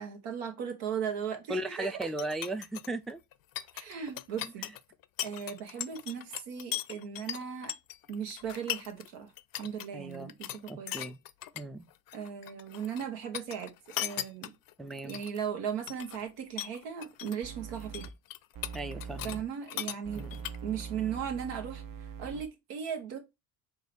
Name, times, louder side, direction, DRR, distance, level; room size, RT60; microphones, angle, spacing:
voice 1, 0.0-2.1 3.7-4.7 5.2-7.7 8.1-9.3 9.6-10.5 10.8-11.0 12.1-14.5 15.0-18.0 19.2-20.3 20.6-23.2, right 7 dB, 90° right, 1.2 m, -37 dB
voice 2, 1.5-3.2 4.6-4.7 9.9-10.3 10.7-11.2 11.6-11.9 14.8-15.2 18.7-19.4 20.2-20.3, right 2 dB, ahead, 0.3 m, -37 dB
sound 1, 2.0-9.1 9.4-9.9 10.1-11.6 11.9-13.1 13.3-15.4 15.8-16.3 16.6-17.4 17.7-19.4 19.7-20.9, left 14 dB, 55° left, 0.5 m, -39 dB
sound 2, 17.4-18.1 18.5-19.4 20.0-22.4, right 6 dB, 50° right, 0.8 m, -42 dB
4.6 x 2.4 x 4.8 m
supercardioid pair, 80°, 41 cm